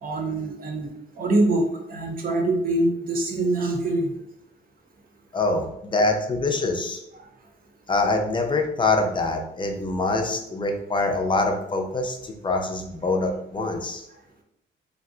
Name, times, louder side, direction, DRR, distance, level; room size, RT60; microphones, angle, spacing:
voice 1, 0.0-0.9 1.2-4.1, right 2 dB, 45° right, 2 dB, 0.7 m, -24 dB
voice 2, 5.3-7.0 7.9-14.0, left 2 dB, 25° left, 3 dB, 0.5 m, -24 dB
2.5 x 2.2 x 3.7 m, 0.79 s
cardioid pair, 90°, 20 cm